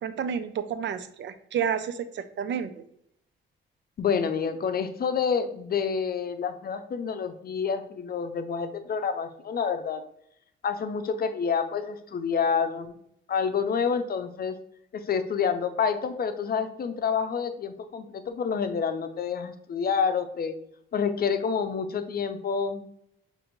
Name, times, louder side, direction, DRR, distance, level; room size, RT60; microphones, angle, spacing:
voice 1, 0.0-2.8, right 8 dB, 60° right, 11 dB, 0.5 m, -30 dB
voice 2, 4.0-10.0 10.6-13.0 13.3-14.6 14.9-20.5 20.9-22.8, left 6 dB, 45° left, 9 dB, 0.6 m, -28 dB
6.3 x 2.6 x 3.0 m, 0.72 s
cardioid pair, 80°, 21 cm